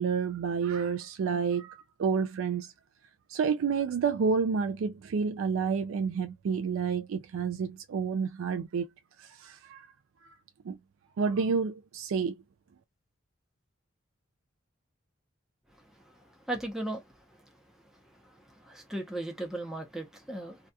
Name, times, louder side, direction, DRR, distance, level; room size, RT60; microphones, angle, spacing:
voice 1, 0.0-2.7 3.3-8.9 9.2-9.8 10.7-10.8 11.2-12.4, right 6 dB, 75° right, 0.3 m, -29 dB
voice 2, 16.5-17.0 18.2-18.3 18.7-20.6, right 1 dB, ahead, 0.6 m, -36 dB
2.7 x 2.3 x 2.2 m
head